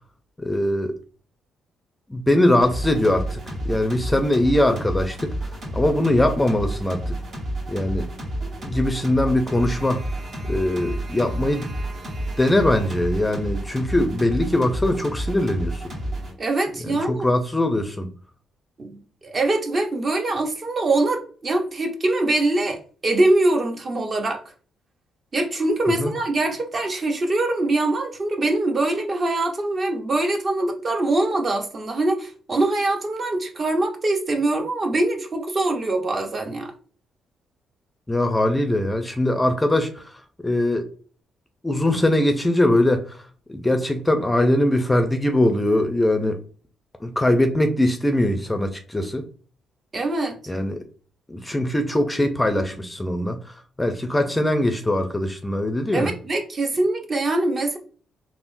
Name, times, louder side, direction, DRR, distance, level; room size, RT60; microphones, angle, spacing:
voice 1, 0.4-0.9 2.1-3.4 3.6-5.3 5.7-7.1 7.7-8.1 8.6-10.0 10.5-11.7 12.4-15.8 16.8-18.1 26.0-26.1 38.1-40.1 40.4-40.8 41.6-43.2 43.5-46.4 47.0-49.2 50.5-50.8 51.3-56.1, left 1 dB, 15° left, 0.4 m, -21 dB
sound 1, 2.6-16.3, right 1 dB, 60° right, 1.0 m, -30 dB
voice 2, 16.4-17.2 18.8-24.4 25.3-36.7 49.9-50.4 55.9-57.8, right 2 dB, 40° right, 0.6 m, -23 dB
3.5 x 2.0 x 2.5 m
cardioid pair, 90°, 0 cm